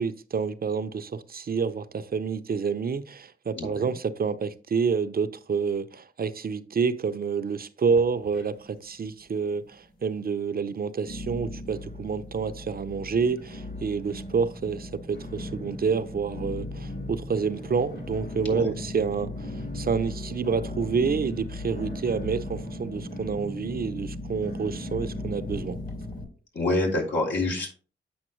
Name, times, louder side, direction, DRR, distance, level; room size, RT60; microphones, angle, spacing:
voice 1, 0.0-25.8, right 5 dB, 50° right, 0.7 m, -28 dB
voice 2, 3.6-3.9 18.5-18.7 26.5-27.7, left 2 dB, 70° left, 3.6 m, -27 dB
sound 1, 7.9-8.8 9.1-9.7 10.2-10.3 11.1-26.2, left 1 dB, 50° left, 3.9 m, -37 dB
8.7 x 5.8 x 3.2 m
supercardioid pair, 40°, 19 cm